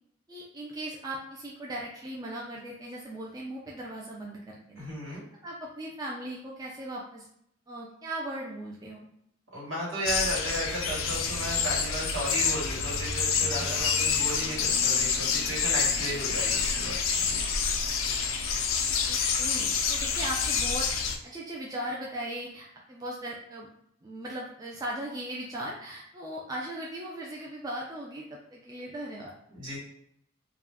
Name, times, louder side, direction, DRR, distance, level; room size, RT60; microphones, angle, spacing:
voice 1, 0.3-7.3 7.7-9.1 19.0-23.7 24.0-29.3, right 1 dB, 20° right, -3 dB, 0.3 m, -38 dB
voice 2, 4.8-5.2 9.5-17.4 29.5-29.8, right 1 dB, 70° right, -6 dB, 1.3 m, -34 dB
sound 1, 10.1-21.2, left 6 dB, 90° left, 0.4 m, -28 dB
2.4 x 2.2 x 3.3 m, 0.73 s
head